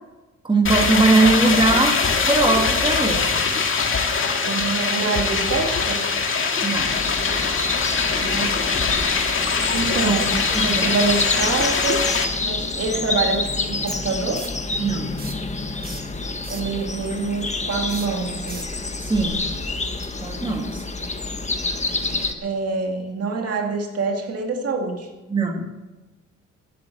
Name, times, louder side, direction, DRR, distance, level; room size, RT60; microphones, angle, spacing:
voice 1, 0.4-2.0 2.3-3.3 6.6-6.9 10.5-10.8 14.8-15.1 19.0-19.4 20.2-20.8 25.3-25.7, right 3 dB, 15° right, 2 dB, 1.9 m, -20 dB
sound 1, 0.7-12.3, left 5 dB, 45° left, 2.0 m, -22 dB
voice 2, 4.4-6.1 8.2-9.2 9.7-12.1 12.4-14.5 16.5-18.6 20.9-21.1 22.4-25.1, right 4 dB, 55° right, 3 dB, 2.2 m, -26 dB
sound 2, 6.8-22.3, left 3 dB, 25° left, 1.5 m, -28 dB
sound 3, 13.9-14.7 15.1-15.5 15.8-16.8 17.8-18.8 20.0-20.1, right 4 dB, 30° right, 1.7 m, -38 dB
15.0 x 8.8 x 7.7 m, 1.2 s
cardioid pair, 90°, 30 cm